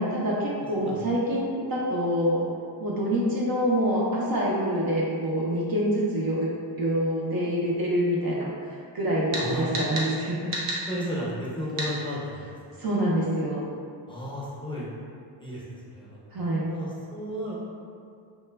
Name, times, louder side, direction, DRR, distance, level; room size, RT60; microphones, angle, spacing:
voice 1, 0.0-2.4 2.8-6.5 6.8-10.5 12.8-13.7 16.3-16.7, equal, 50° right, -4 dB, 0.5 m, -26 dB
voice 2, 9.3-9.7 10.9-12.4 12.8-12.9 14.1-14.9 15.4-16.3 16.7-17.6, equal, 10° left, -8 dB, 0.6 m, -33 dB
sound 1, 9.3-9.5 9.7-10.1 10.5-10.8 11.8-11.9, right 1 dB, 90° right, 0.7 m, -29 dB
3.1 x 2.1 x 2.2 m, 2.3 s
cardioid pair, 75°, 48 cm